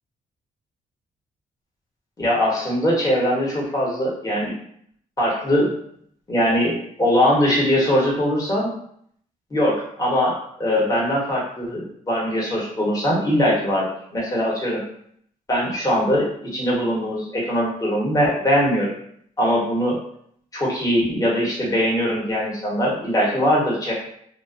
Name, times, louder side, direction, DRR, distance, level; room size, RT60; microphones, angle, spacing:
voice 1, 2.2-4.5 5.2-5.7 6.3-8.7 9.5-14.8 15.5-18.9 19.4-20.0 20.5-23.9, equal, 25° left, -5 dB, 1.1 m, -21 dB
2.5 x 2.3 x 2.4 m, 0.65 s
cardioid pair, 80°, 15 cm